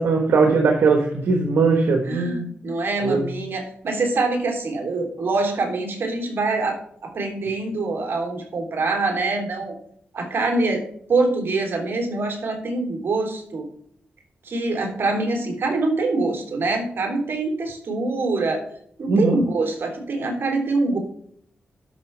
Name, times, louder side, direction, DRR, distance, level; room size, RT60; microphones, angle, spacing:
voice 1, 0.0-2.5 3.0-3.3 19.1-19.4, right 4 dB, 80° right, 3 dB, 1.4 m, -19 dB
voice 2, 2.0-9.7 10.1-10.8 11.1-13.7 14.4-18.6 19.0-21.0, right 3 dB, 65° right, 2 dB, 3.3 m, -24 dB
13.0 x 5.8 x 3.4 m, 0.65 s
cardioid pair, 65°, 4 cm